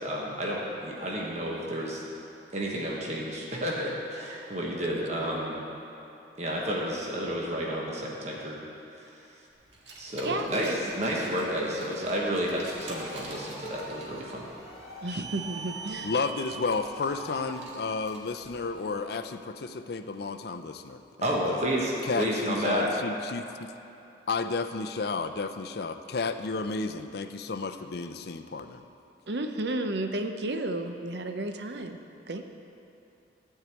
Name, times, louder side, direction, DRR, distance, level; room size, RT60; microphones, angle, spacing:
voice 1, 0.0-2.0 2.5-5.5 6.4-8.6 8.9-9.1 10.0-10.7 10.9-14.4 21.2-22.9, equal, 40° right, -3 dB, 1.2 m, -31 dB
Car, 9.7-19.2, right 4 dB, 80° right, 1.7 m, -45 dB
voice 2, 10.2-10.9 15.0-16.1 29.3-32.0 32.3-32.4, right 2 dB, 65° right, 6 dB, 0.7 m, -32 dB
sound 1, 12.6-17.7, right 2 dB, ahead, 2.0 m, -46 dB
voice 3, 16.0-21.7 22.0-23.7 24.3-28.9, left 4 dB, 60° left, 9 dB, 0.5 m, -32 dB
12.0 x 4.7 x 8.2 m, 2.7 s
head